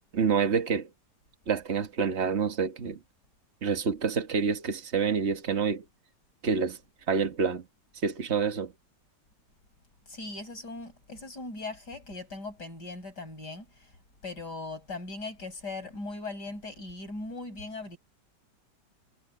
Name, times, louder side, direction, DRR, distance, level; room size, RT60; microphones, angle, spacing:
voice 1, 0.1-0.9 1.5-3.0 3.6-5.8 6.4-6.8 7.1-7.6 8.0-8.7, right 6 dB, 40° right, 1.7 m, -27 dB
voice 2, 10.1-13.9 14.2-18.0, left 3 dB, 65° left, 7.9 m, -39 dB
omnidirectional pair, 1.9 m